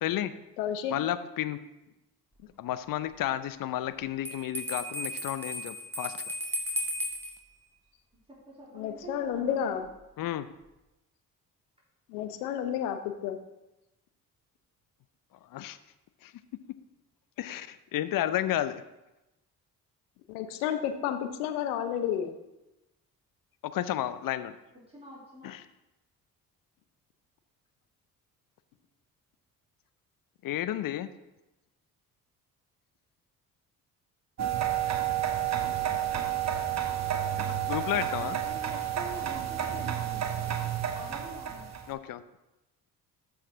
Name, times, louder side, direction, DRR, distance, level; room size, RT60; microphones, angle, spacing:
voice 1, 0.0-0.3 0.9-1.6 2.6-6.2 10.2-10.5 15.5-15.8 16.2-16.3 17.4-18.8 23.6-24.5 25.4-25.7 30.4-31.1 37.7-38.4 41.9-42.2, left 12 dB, 45° left, 14 dB, 0.6 m, -32 dB
voice 2, 0.6-0.9 8.7-9.9 12.1-13.4 20.3-22.4, left 9 dB, 75° left, 8 dB, 0.9 m, -31 dB
Bell, 4.2-7.3, equal, 5° left, 2.1 m, -35 dB
voice 3, 8.3-9.8 24.9-25.5 38.2-40.4 40.9-41.7, right 1 dB, 15° right, -6 dB, 3.5 m, -46 dB
sound 1, 34.4-41.9, right 10 dB, 35° right, 1.0 m, -30 dB
13.5 x 4.9 x 3.8 m, 0.97 s
figure-of-eight pair, 45°, 47 cm